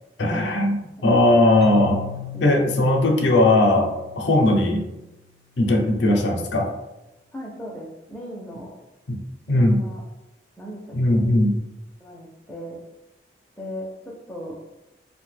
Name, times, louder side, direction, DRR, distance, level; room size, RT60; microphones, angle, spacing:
voice 1, 0.2-2.0 2.4-4.8 5.6-6.7 9.1-9.2 9.5-9.8 10.9-11.6, left 1 dB, 80° left, 2 dB, 0.5 m, -19 dB
Keyboard (musical), 1.6-5.3, left 9 dB, 85° right, 0.6 m, -38 dB
voice 2, 7.3-8.7 9.5-10.0 10.6-11.2 12.0-12.8 13.6-14.6, equal, 5° left, -3 dB, 0.4 m, -37 dB
2.6 x 2.1 x 3.2 m, 0.97 s
head